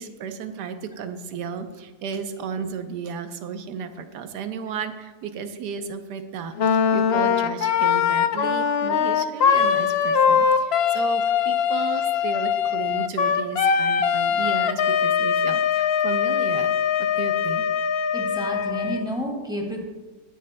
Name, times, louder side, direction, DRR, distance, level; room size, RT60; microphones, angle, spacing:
voice 1, 0.0-17.7, right 6 dB, 80° right, 8 dB, 1.4 m, -34 dB
Wind instrument woodwind instrument, 6.6-19.1, left 7 dB, 75° left, 0.5 m, -22 dB
voice 2, 18.1-19.8, equal, 5° right, 0 dB, 1.8 m, -30 dB
19.5 x 10.0 x 2.2 m, 1.2 s
omnidirectional pair, 1.8 m